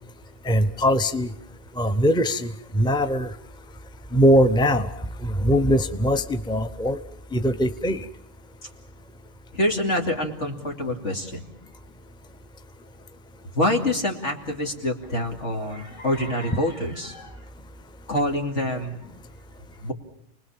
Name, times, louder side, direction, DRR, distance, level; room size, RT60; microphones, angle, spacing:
voice 1, 0.4-1.3 1.8-3.3 4.1-4.9 5.2-7.0 7.3-8.0, equal, 5° left, 9 dB, 0.8 m, -21 dB
voice 2, 9.5-11.4 13.5-17.3 18.1-19.1 19.8-19.9, left 1 dB, 75° left, 2 dB, 3.0 m, -26 dB
29.0 x 20.5 x 7.3 m, 0.72 s
omnidirectional pair, 1.2 m